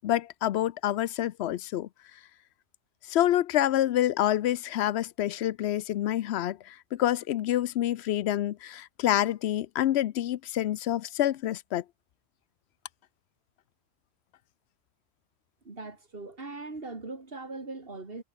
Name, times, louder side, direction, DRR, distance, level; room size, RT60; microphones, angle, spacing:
voice 1, 0.0-1.9 3.1-11.8, left 12 dB, 85° left, 0.9 m, -27 dB
voice 2, 15.6-18.2, right 3 dB, 65° right, 2.9 m, -40 dB
omnidirectional pair, 1.1 m